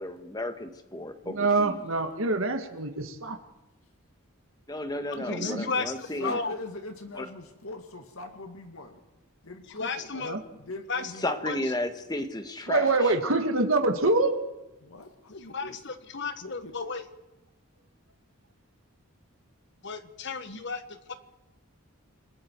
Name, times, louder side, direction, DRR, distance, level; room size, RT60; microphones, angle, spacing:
voice 1, 0.0-1.8 4.7-6.4 7.2-7.3 10.2-10.3 11.2-12.9, left 1 dB, 20° left, 8 dB, 1.5 m, -33 dB
voice 2, 1.2-3.4 5.2-5.6 10.1-10.4 12.7-14.4, right 3 dB, 70° right, 5 dB, 1.8 m, -25 dB
voice 3, 5.1-6.5 9.7-10.4 10.9-11.6 15.5-17.0 19.8-21.1, left 4 dB, 55° left, 10 dB, 1.4 m, -34 dB
voice 4, 6.0-9.0 9.4-10.1 10.5-11.4 14.8-15.8 16.3-16.7, left 2 dB, 75° left, 5 dB, 2.0 m, -42 dB
28.5 x 21.0 x 4.7 m, 0.99 s
head